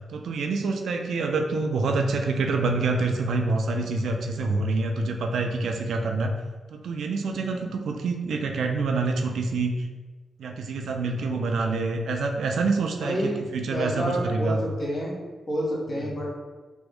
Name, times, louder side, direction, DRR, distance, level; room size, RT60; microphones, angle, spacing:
voice 1, 0.1-6.3 6.7-9.9 10.4-14.6 15.9-16.1, right 3 dB, 85° right, 4 dB, 0.3 m, -26 dB
voice 2, 13.0-15.1 15.5-16.4, equal, 40° left, -4 dB, 1.0 m, -29 dB
3.4 x 2.0 x 3.5 m, 1.3 s
cardioid pair, 100°, 0 cm